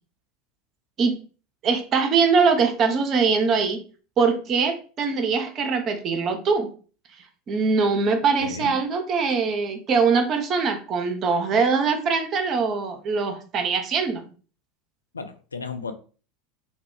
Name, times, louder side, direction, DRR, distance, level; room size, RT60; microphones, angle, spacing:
voice 1, 1.6-3.8 4.2-6.7 7.5-14.3, right 5 dB, 40° right, 6 dB, 0.6 m, -22 dB
voice 2, 8.4-8.8 15.1-15.9, left 4 dB, 85° left, 8 dB, 0.3 m, -34 dB
2.3 x 2.1 x 3.6 m, 0.38 s
figure-of-eight pair, 80°, 0 cm